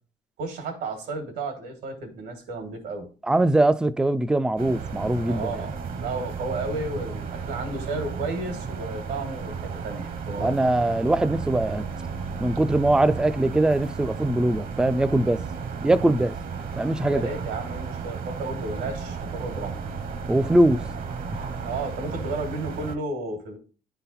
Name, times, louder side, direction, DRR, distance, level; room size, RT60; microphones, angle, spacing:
voice 1, 0.4-3.1 5.3-10.7 17.1-19.8 21.6-23.6, right 2 dB, 80° right, 2.0 m, -33 dB
voice 2, 3.3-5.5 10.4-11.8 12.4-15.4 15.8-16.3 16.8-17.3 20.3-20.8, right 1 dB, 5° right, 0.3 m, -22 dB
sound 1, 4.6-23.0, right 5 dB, 55° right, 1.0 m, -34 dB
10.5 x 4.0 x 4.2 m
cardioid pair, 110°, 17 cm